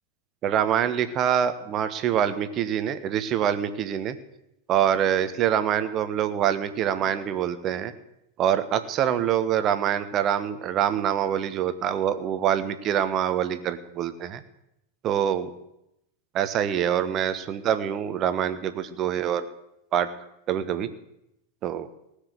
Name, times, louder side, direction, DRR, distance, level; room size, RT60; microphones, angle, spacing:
voice 1, 0.4-4.1 4.7-7.9 8.4-14.4 15.0-15.5 16.3-19.5 19.9-20.1 20.5-20.9 21.6-21.9, right 9 dB, 35° right, 11 dB, 1.2 m, -25 dB
19.0 x 6.6 x 8.0 m, 0.85 s
figure-of-eight pair, 90°, 0 cm